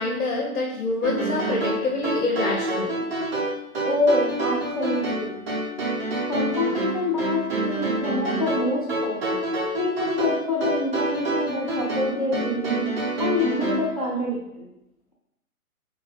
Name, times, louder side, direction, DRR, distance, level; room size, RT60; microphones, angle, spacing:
voice 1, 0.0-3.0, left 2 dB, 60° left, -1 dB, 0.7 m, -26 dB
sound 1, 1.0-13.9, right 1 dB, 40° right, 0.9 m, -27 dB
voice 2, 3.8-5.4 6.3-9.4 9.8-12.9 13.2-14.7, left 2 dB, 30° left, -5 dB, 0.4 m, -26 dB
2.9 x 2.6 x 2.9 m, 0.87 s
hypercardioid pair, 145°, 45 cm